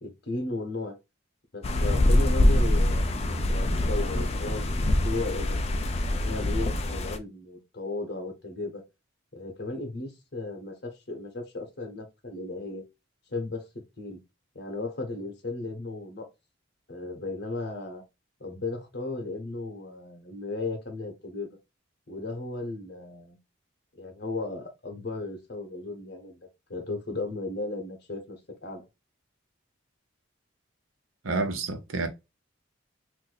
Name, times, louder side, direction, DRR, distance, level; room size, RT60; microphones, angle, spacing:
voice 1, 0.0-1.0 1.5-4.7 5.0-5.6 6.1-8.8 9.3-12.8 13.3-13.7 14.0-14.2 14.5-16.3 16.9-18.0 18.4-21.5 22.1-23.4 23.9-26.4 26.7-28.9, left 2 dB, 55° left, 0.9 m, -35 dB
sound 1, 1.6-7.2, left 1 dB, 30° left, 0.4 m, -24 dB
voice 2, 31.2-32.1, right 3 dB, 90° right, 0.7 m, -29 dB
2.6 x 2.6 x 3.9 m
head